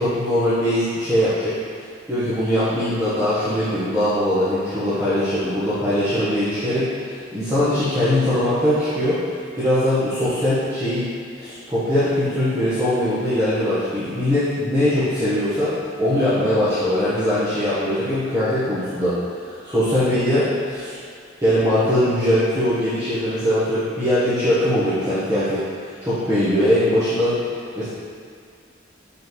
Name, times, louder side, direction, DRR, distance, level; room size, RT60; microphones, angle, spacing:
voice 1, 0.0-1.5 2.1-9.2 9.5-11.1 11.4-15.7 16.0-19.1 19.4-21.0 21.4-25.6 26.0-27.9, left 1 dB, 15° right, -14 dB, 1.2 m, -21 dB
6.7 x 5.5 x 3.1 m, 2.2 s
head